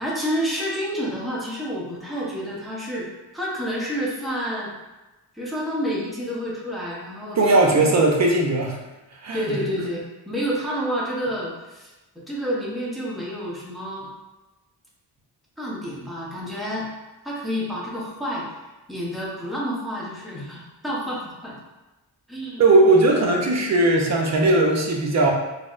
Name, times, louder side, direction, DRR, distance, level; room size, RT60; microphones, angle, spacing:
voice 1, 0.0-3.1 3.3-4.7 5.3-7.9 9.3-11.9 12.3-14.1 15.6-16.9 17.2-18.5 18.9-21.6 22.3-22.6, equal, ahead, -6 dB, 0.7 m, -29 dB
voice 2, 7.4-8.8 9.1-9.6 22.6-25.3, right 2 dB, 40° right, 0 dB, 0.5 m, -18 dB
4.0 x 2.1 x 2.4 m, 1.1 s
wide cardioid pair, 105°, 46 cm